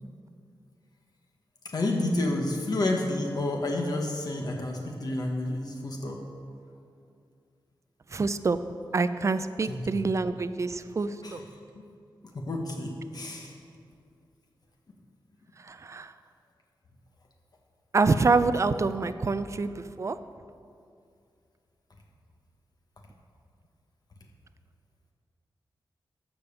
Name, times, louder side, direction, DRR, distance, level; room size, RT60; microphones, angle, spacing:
voice 1, 1.7-6.2 9.7-10.0 11.2-11.4 12.3-13.5, left 2 dB, 50° left, 1 dB, 1.1 m, -30 dB
voice 2, 8.1-8.6 8.9-11.4 15.6-16.1 17.9-20.2, right 3 dB, 35° right, 12 dB, 0.4 m, -26 dB
13.0 x 5.2 x 7.0 m, 2.4 s
wide cardioid pair, 125°, 9 cm